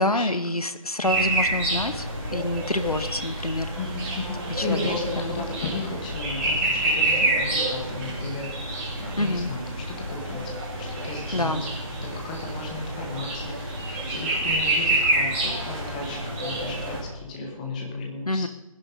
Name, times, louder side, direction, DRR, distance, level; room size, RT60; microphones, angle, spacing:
voice 1, 0.0-2.1 2.3-3.7 4.5-5.3 9.2-9.5 11.3-11.6 18.3-18.5, left 1 dB, 85° left, 10 dB, 1.3 m, -27 dB
sound 1, 1.0-17.0, right 2 dB, 20° right, 4.5 m, -28 dB
voice 2, 3.8-8.7 9.0-10.5 10.8-11.7 12.0-13.7 14.1-18.5, left 3 dB, 15° left, 0 dB, 1.4 m, -34 dB
20.0 x 10.5 x 4.1 m, 1.2 s
figure-of-eight pair, 160°, 19 cm